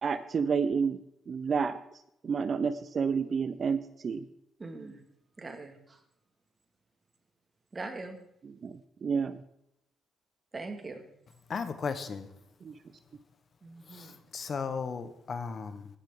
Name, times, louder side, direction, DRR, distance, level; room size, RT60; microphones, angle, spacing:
voice 1, 0.0-1.0 1.3-1.8 2.2-4.2 8.4-9.4 12.6-12.7, right 5 dB, 45° right, 13 dB, 0.6 m, -30 dB
voice 2, 4.6-5.0 5.4-6.0 7.7-8.2 10.5-11.0 13.6-14.2, right 3 dB, 30° right, 5 dB, 2.0 m, -41 dB
voice 3, 11.5-12.3 13.9-15.9, left 5 dB, 45° left, 11 dB, 1.1 m, -36 dB
15.0 x 10.5 x 3.8 m, 0.80 s
cardioid pair, 90°, 0 cm